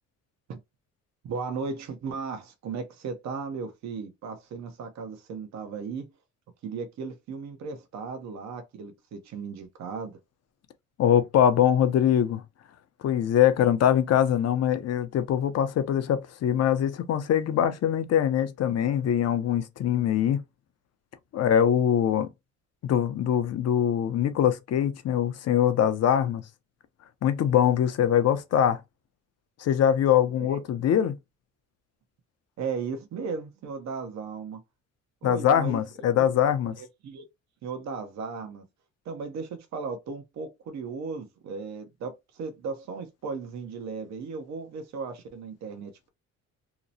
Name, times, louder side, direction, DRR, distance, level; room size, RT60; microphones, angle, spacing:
voice 1, 1.2-6.1 6.6-10.2 30.4-30.6 32.6-34.6 35.2-35.8 36.2-36.3 36.8-37.2 37.6-38.6 39.1-46.1, right 5 dB, 65° right, 0.7 m, -36 dB
voice 2, 11.0-12.4 13.0-20.4 21.3-22.3 22.8-26.4 27.2-28.8 29.6-31.1 35.2-36.7, left 9 dB, 55° left, 0.6 m, -23 dB
2.8 x 2.0 x 2.6 m
cardioid pair, 90°, 30 cm